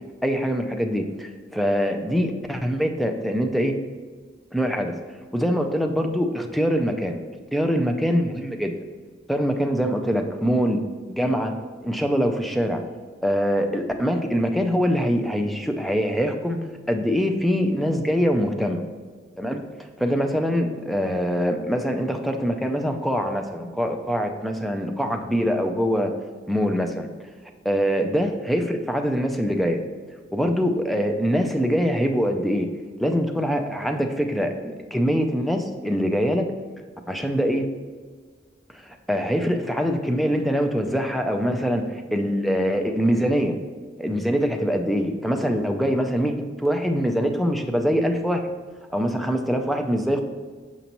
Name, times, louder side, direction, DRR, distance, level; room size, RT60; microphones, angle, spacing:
voice 1, 0.2-3.7 4.5-5.0 5.3-7.2 7.5-8.8 9.3-10.8 11.1-11.5 11.8-12.8 13.2-16.6 16.9-18.8 19.4-26.1 26.5-27.1 27.6-29.8 30.3-32.7 33.0-36.5 37.1-37.7 38.7-43.6 44.0-48.6 48.9-50.2, equal, ahead, 4 dB, 0.4 m, -23 dB
6.1 x 5.3 x 2.9 m, 1.5 s
head